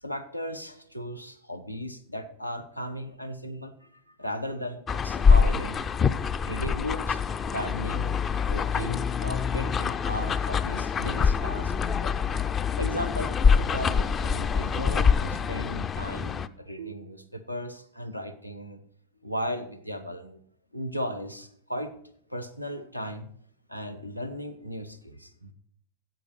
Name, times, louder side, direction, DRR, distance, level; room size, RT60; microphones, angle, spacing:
voice 1, 0.0-5.8 6.3-8.2 8.5-12.4 12.8-18.8 19.2-20.4 20.7-21.9 22.3-23.3 23.7-25.5, equal, 90° left, 8 dB, 0.8 m, -36 dB
sound 1, 4.9-16.5, left 6 dB, 25° left, 0.4 m, -25 dB
sound 2, 8.8-9.7 12.8-13.8 16.8-17.8, right 9 dB, 55° right, 0.5 m, -46 dB
9.1 x 8.1 x 6.6 m, 0.67 s
figure-of-eight pair, 90°, 0 cm